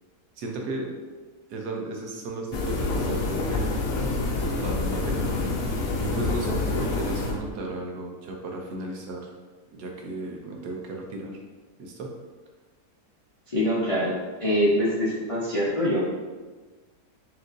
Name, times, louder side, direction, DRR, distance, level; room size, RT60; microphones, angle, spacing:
voice 1, 0.4-0.9 1.5-3.7 4.6-5.3 5.6-9.3 9.7-11.4 11.8-12.1, right 2 dB, 85° right, 1 dB, 1.3 m, -34 dB
sound 1, 2.5-7.5, left 3 dB, 65° left, 0.9 m, -27 dB
voice 2, 13.5-16.0, equal, 50° left, -8 dB, 0.4 m, -24 dB
6.0 x 2.5 x 2.6 m, 1.3 s
omnidirectional pair, 1.7 m